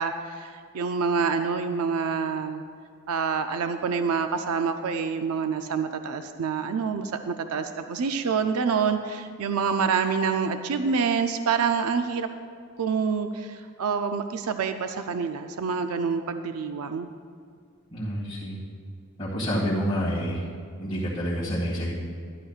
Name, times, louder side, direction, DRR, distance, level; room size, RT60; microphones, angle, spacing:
voice 1, 0.0-2.6 3.1-12.3 12.8-17.1, right 5 dB, 80° right, 8 dB, 0.4 m, -27 dB
voice 2, 17.9-18.6 19.2-20.4 20.8-21.9, equal, 20° left, -13 dB, 2.0 m, -28 dB
12.5 x 11.5 x 2.4 m, 2.2 s
head